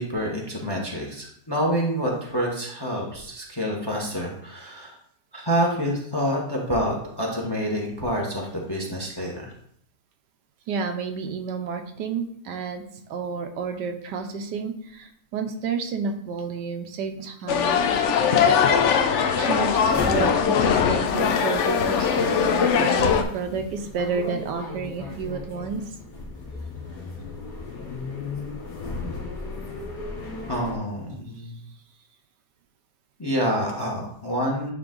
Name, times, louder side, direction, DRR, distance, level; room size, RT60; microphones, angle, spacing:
voice 1, 0.0-5.0 5.3-9.5 30.5-31.6 33.2-34.7, equal, 15° left, -1 dB, 0.9 m, -27 dB
voice 2, 10.7-12.8 13.1-17.8 19.3-25.8, right 5 dB, 75° right, 6 dB, 1.3 m, -30 dB
sound 1, 17.5-23.2, left 7 dB, 80° left, 0.6 m, -21 dB
sound 2, 19.9-30.8, left 3 dB, 65° left, 2.0 m, -36 dB
9.6 x 3.3 x 3.8 m, 0.68 s
omnidirectional pair, 1.9 m